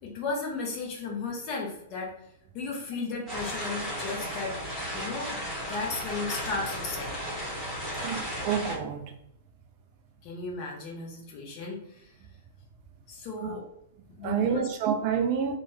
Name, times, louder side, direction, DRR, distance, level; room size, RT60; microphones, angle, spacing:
voice 1, 0.0-2.1 2.5-4.5 4.9-7.1 10.2-12.1 13.1-13.6 14.1-14.7, left 4 dB, 35° left, 0.9 m, -35 dB
sound 1, 3.3-8.8, equal, ahead, 1.1 m, -35 dB
voice 2, 7.9-9.1 13.4-13.6 14.2-15.6, right 7 dB, 40° right, 0.3 m, -28 dB
2.9 x 2.3 x 3.0 m
figure-of-eight pair, 105°, 0 cm